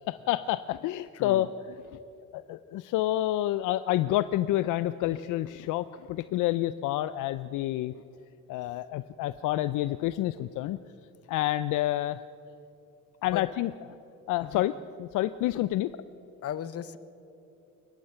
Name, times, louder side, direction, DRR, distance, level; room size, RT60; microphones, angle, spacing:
voice 1, 0.1-1.5 2.3-7.9 8.5-10.8 11.3-12.2 13.2-13.7 14.3-14.7 15.0-15.9, left 14 dB, 70° left, 14 dB, 0.5 m, -28 dB
voice 2, 0.8-1.5 13.2-13.5 14.4-14.7 15.4-15.5 15.9-16.0 16.4-17.0, left 10 dB, 50° left, 14 dB, 1.0 m, -38 dB
22.5 x 20.5 x 5.7 m, 2.9 s
cardioid pair, 110°, 32 cm